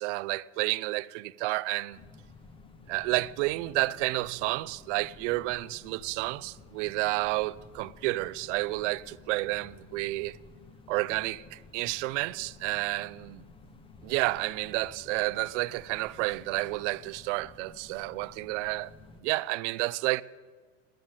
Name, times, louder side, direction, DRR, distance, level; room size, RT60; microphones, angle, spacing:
voice 1, 0.0-2.0 2.9-10.4 10.9-13.4 14.0-18.9 19.2-20.2, right 20 dB, 60° right, 0.5 m, -30 dB
sound 1, 1.9-19.2, left 3 dB, 15° left, 0.7 m, -53 dB
13.5 x 10.5 x 9.0 m
supercardioid pair, 155°, 40 cm